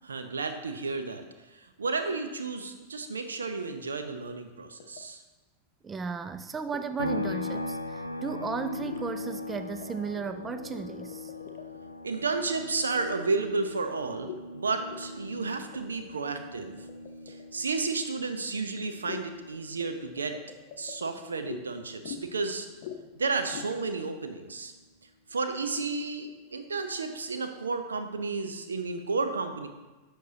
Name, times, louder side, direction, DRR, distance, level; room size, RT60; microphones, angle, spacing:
voice 1, 0.1-1.2 1.6-5.2 12.0-16.8 17.3-20.4 20.8-22.7 23.2-24.7 25.3-29.7, right 4 dB, 75° right, 7 dB, 0.7 m, -32 dB
sound 1, 4.8-5.0 6.5-6.8 7.3-7.6 8.8-9.0 9.3-10.0 10.3-11.9 14.2-14.4 14.8-15.1 15.4-15.5 15.7-17.4 19.0-19.3 19.8-21.6 22.0-22.5 22.8-23.0 23.3-23.7, left 8 dB, 50° left, 0.7 m, -43 dB
voice 2, 5.8-11.3, right 5 dB, 15° right, 10 dB, 0.3 m, -35 dB
sound 2, 7.0-20.5 20.9-23.1, left 2 dB, 85° left, 0.6 m, -40 dB
11.0 x 6.4 x 2.8 m, 1.2 s
figure-of-eight pair, 90°, 0 cm